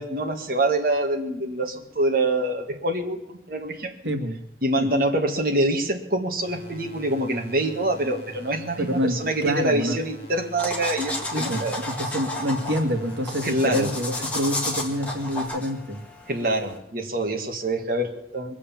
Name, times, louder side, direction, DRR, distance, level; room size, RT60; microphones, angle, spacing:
voice 1, 0.0-4.1 4.6-11.8 13.4-13.9 16.3-18.6, right 1 dB, 55° right, 2 dB, 1.9 m, -25 dB
voice 2, 4.1-4.4 4.8-4.9 8.8-9.1 9.4-10.0 11.3-16.0, equal, 90° right, 6 dB, 2.0 m, -27 dB
sound 1, 6.4-15.4, equal, 35° left, 4.6 m, -44 dB
sound 2, 10.6-16.8, left 1 dB, 10° left, 2.7 m, -32 dB
22.5 x 8.3 x 7.2 m, 0.83 s
head